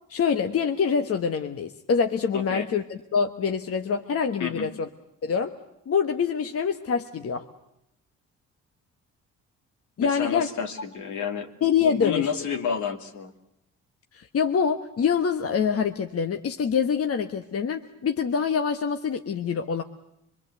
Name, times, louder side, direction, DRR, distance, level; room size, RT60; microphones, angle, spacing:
voice 1, 0.1-4.9 5.2-5.5 5.9-7.5 10.0-10.5 11.6-12.3 14.1-19.8, left 6 dB, 50° left, 6 dB, 1.3 m, -25 dB
voice 2, 2.3-2.7 4.4-4.7 10.0-11.5 11.8-13.3, left 7 dB, 75° left, 5 dB, 2.7 m, -30 dB
24.5 x 23.5 x 8.1 m, 0.79 s
cardioid pair, 90°, 30 cm